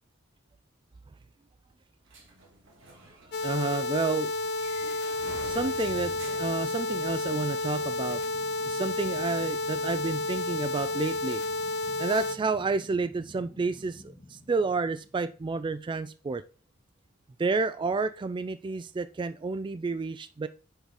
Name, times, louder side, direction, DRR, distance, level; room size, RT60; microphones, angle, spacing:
sound 1, 2.1-7.4, right 1 dB, 65° right, 2.4 m, -48 dB
sound 2, 3.3-12.4, left 2 dB, 55° left, 0.7 m, -31 dB
voice 1, 3.4-4.3 5.4-8.2 8.6-11.4 12.0-16.4 17.4-20.5, right 4 dB, 25° right, 13 dB, 0.3 m, -30 dB
sound 3, 5.1-16.0, left 1 dB, 20° left, 1.0 m, -52 dB
6.2 x 5.2 x 4.8 m, 0.37 s
head